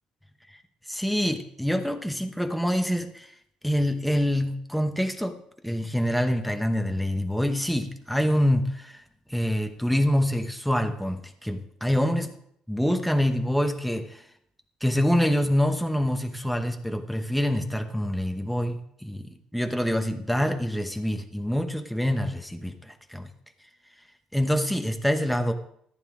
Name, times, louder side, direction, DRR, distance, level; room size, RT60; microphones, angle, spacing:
voice 1, 0.9-3.3 3.6-5.4 5.6-9.0 9.3-12.3 12.7-14.2 14.8-23.3 24.3-25.5, equal, ahead, 5 dB, 0.9 m, -26 dB
14.5 x 9.8 x 3.7 m, 0.68 s
cardioid pair, 120°, 2 cm